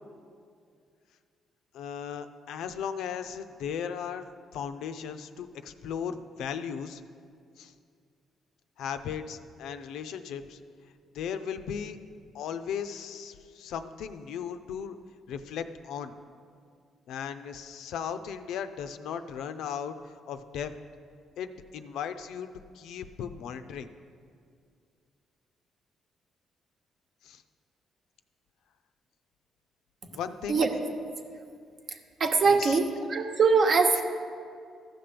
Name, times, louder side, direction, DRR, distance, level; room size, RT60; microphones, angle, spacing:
voice 1, 1.7-4.3 4.5-7.0 7.6-7.7 8.8-10.6 11.1-12.0 12.3-15.0 15.3-16.2 17.1-20.7 21.4-22.5 22.7-23.9 27.2-27.4 30.1-30.6 32.4-32.8, left 7 dB, 85° left, 10 dB, 0.5 m, -36 dB
voice 2, 31.9-34.0, right 4 dB, 50° right, 5 dB, 1.0 m, -23 dB
14.0 x 5.9 x 5.1 m, 2.2 s
cardioid pair, 90°, 0 cm